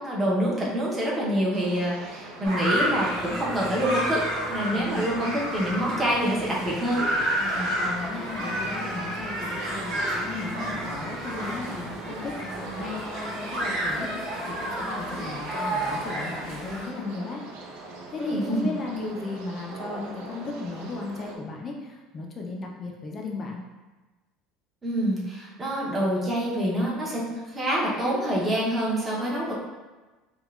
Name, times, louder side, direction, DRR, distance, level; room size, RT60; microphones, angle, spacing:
voice 1, 0.0-7.0 18.2-18.7 24.8-29.5, equal, 15° right, -5 dB, 0.7 m, -26 dB
sound 1, 1.5-21.4, right 2 dB, 80° right, 0.6 m, -42 dB
sound 2, 2.4-16.8, right 1 dB, 50° right, 1.4 m, -30 dB
voice 2, 4.7-5.4 7.4-17.4 18.1-23.6, left 3 dB, 25° left, 0 dB, 0.4 m, -36 dB
5.2 x 2.2 x 2.3 m, 1.2 s
cardioid pair, 165°, 0 cm